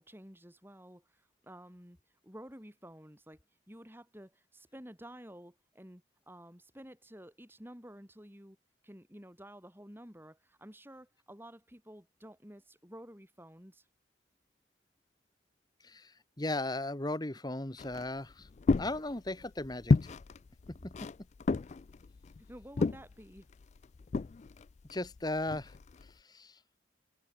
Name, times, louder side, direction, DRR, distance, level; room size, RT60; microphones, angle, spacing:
voice 1, 0.0-2.0 2.2-3.4 3.7-8.6 8.8-13.9 22.5-23.5, equal, 10° right, 7.7 m, -51 dB
voice 2, 15.8-18.5 18.8-20.2 20.8-20.9 24.9-25.8 26.0-26.6, left 2 dB, 20° left, 1.2 m, -37 dB
sound 1, 17.8-26.1, left 3 dB, 35° left, 0.3 m, -33 dB
head